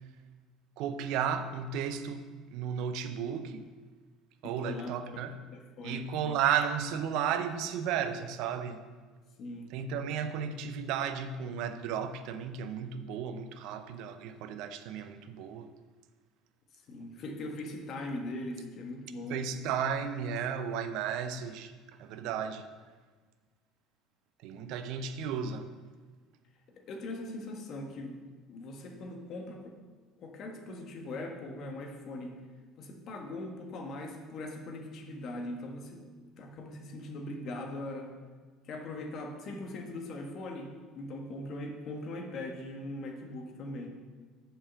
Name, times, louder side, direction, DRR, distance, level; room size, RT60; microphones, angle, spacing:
voice 1, 0.8-3.7 4.4-5.4 5.8-8.8 9.7-15.7 19.3-21.7 22.0-22.7 24.4-25.7, right 7 dB, 65° right, 0.6 m, -34 dB
voice 2, 4.4-5.2 5.5-6.1 9.4-9.7 16.7-19.5 26.7-28.2 28.5-29.8 30.2-32.4 32.8-36.1 36.4-38.1 38.6-43.9, left 1 dB, 55° left, 1.5 m, -40 dB
7.0 x 5.2 x 6.9 m
hypercardioid pair, 75°, 0 cm